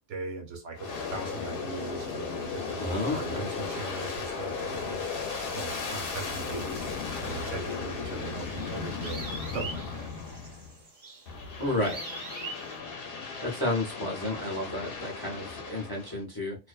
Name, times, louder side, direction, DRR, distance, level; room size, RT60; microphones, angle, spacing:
voice 1, 0.1-2.9 3.1-5.0 5.5-6.9 7.2-10.1, right 4 dB, 80° right, 1.1 m, -40 dB
Aircraft, 0.7-10.8 11.3-16.2, left 5 dB, 55° left, 0.8 m, -36 dB
voice 2, 2.8-3.5 11.6-12.0 13.4-16.6, left 2 dB, 25° left, 0.5 m, -31 dB
sound 1, 7.1-12.8, right 3 dB, 35° right, 0.6 m, -44 dB
2.5 x 2.1 x 2.3 m
omnidirectional pair, 1.3 m